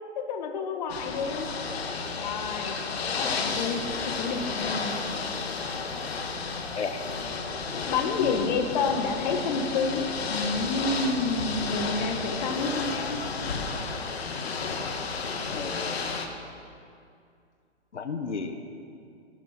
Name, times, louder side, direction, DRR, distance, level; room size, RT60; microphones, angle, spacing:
voice 1, 0.2-1.5 2.2-2.8 3.1-4.9 7.9-13.2, left 4 dB, 40° left, 4 dB, 1.6 m, -29 dB
Ocean / Boat Water vehicle, 0.9-16.3, left 4 dB, 65° left, 1.8 m, -32 dB
voice 2, 3.0-3.6 6.7-7.0 8.2-8.6 12.0-12.1 15.5-16.0 17.9-18.7, left 5 dB, 85° left, 7 dB, 1.4 m, -34 dB
19.0 x 12.0 x 4.5 m, 2.4 s
hypercardioid pair, 145°, 34 cm